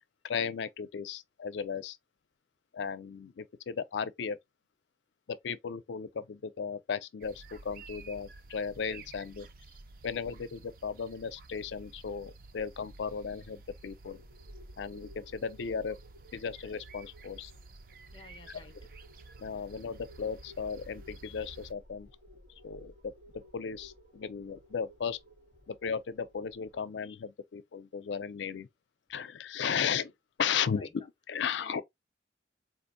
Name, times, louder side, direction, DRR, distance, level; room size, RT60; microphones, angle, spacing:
voice 1, 0.2-2.0 2.7-4.4 5.3-9.5 10.0-14.2 14.8-16.0 16.3-17.5 18.5-18.6 19.4-22.1 22.6-23.1 23.5-25.2 25.7-28.7 29.1-30.1 30.4-31.8, left 6 dB, 85° left, 0.4 m, -35 dB
sound 1, 7.2-21.7, right 3 dB, 50° right, 0.4 m, -52 dB
sound 2, 14.1-26.8, equal, 75° right, 2.6 m, -57 dB
voice 2, 18.1-18.7 22.6-22.7 30.5-30.9 31.6-31.8, left 2 dB, 30° left, 0.4 m, -53 dB
3.9 x 2.6 x 2.6 m
head